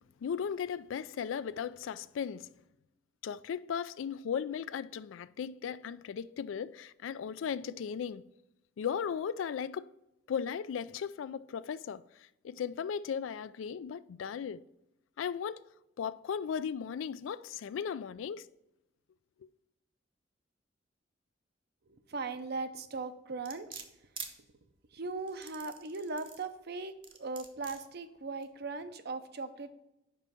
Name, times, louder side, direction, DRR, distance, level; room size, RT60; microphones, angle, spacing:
voice 1, 0.2-2.5 3.2-8.3 8.8-9.9 10.3-14.6 15.2-15.6 16.0-18.5, left 7 dB, 85° left, 0.3 m, -36 dB
voice 2, 21.9-23.8 24.9-29.8, right 3 dB, 60° right, 0.6 m, -39 dB
sound 1, 23.5-24.3 25.3-26.5 27.0-27.8 28.4-28.5, right 5 dB, 25° right, 0.9 m, -45 dB
5.3 x 5.1 x 5.6 m
head